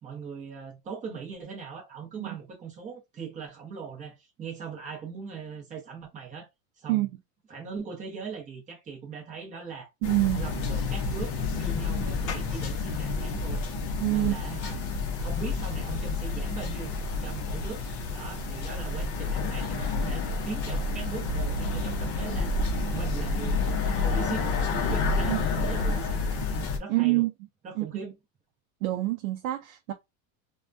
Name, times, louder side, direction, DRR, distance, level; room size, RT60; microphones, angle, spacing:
voice 1, 0.0-6.5 6.8-7.1 7.5-9.9 10.4-13.6 14.0-14.8 15.2-17.0 17.2-22.5 22.9-23.7 24.0-24.5 24.9-26.4 26.8-27.3 27.6-28.1, right 6 dB, 15° right, 0.7 m, -40 dB
sound 1, 10.0-26.8, left 3 dB, 35° left, 0.5 m, -29 dB
voice 2, 10.0-10.5 14.0-14.4 25.3-25.4 26.9-27.3 27.8-28.0 28.8-29.9, right 18 dB, 65° right, 0.5 m, -26 dB
2.2 x 2.2 x 2.5 m
supercardioid pair, 155°, 44 cm